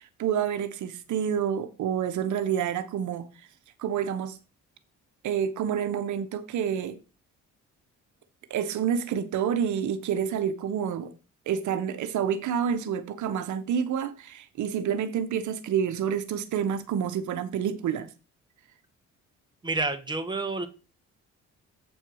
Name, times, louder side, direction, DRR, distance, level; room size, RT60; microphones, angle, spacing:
voice 1, 0.0-3.3 3.8-4.4 5.2-7.0 8.5-11.1 11.5-18.1, right 8 dB, 75° right, 0.9 m, -28 dB
voice 2, 19.6-20.7, right 3 dB, 15° right, 1.3 m, -29 dB
7.9 x 4.4 x 6.2 m
cardioid pair, 90°, 30 cm